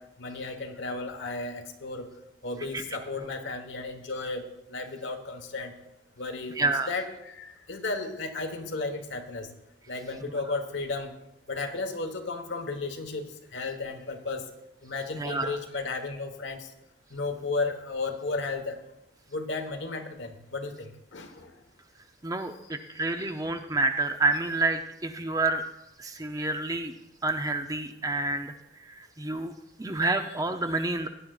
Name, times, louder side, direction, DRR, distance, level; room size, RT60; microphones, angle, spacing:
voice 1, 0.0-2.1 2.4-4.4 4.7-5.7 6.2-6.6 6.9-9.5 9.9-11.1 11.5-14.5 14.8-16.7 17.1-18.8 19.3-21.6, left 3 dB, 75° left, 5 dB, 1.2 m, -34 dB
voice 2, 6.6-6.9 15.1-15.6 22.2-25.6 26.0-26.9 27.2-28.5 28.8-29.5 29.8-31.1, right 3 dB, 20° right, 7 dB, 0.5 m, -28 dB
16.5 x 10.5 x 2.4 m, 0.89 s
head